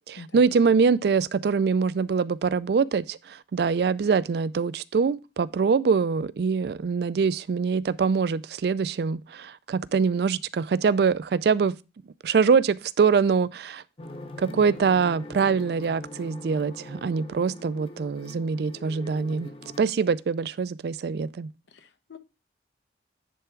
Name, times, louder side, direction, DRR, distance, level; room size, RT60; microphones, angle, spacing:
voice 1, 0.1-11.8 12.2-13.8 14.4-19.5 19.8-21.5, right 5 dB, 65° right, 0.3 m, -24 dB
sound 1, 14.0-19.8, left 1 dB, 30° left, 0.6 m, -42 dB
voice 2, 21.7-22.2, left 4 dB, 90° left, 0.8 m, -46 dB
10.0 x 3.5 x 4.4 m
head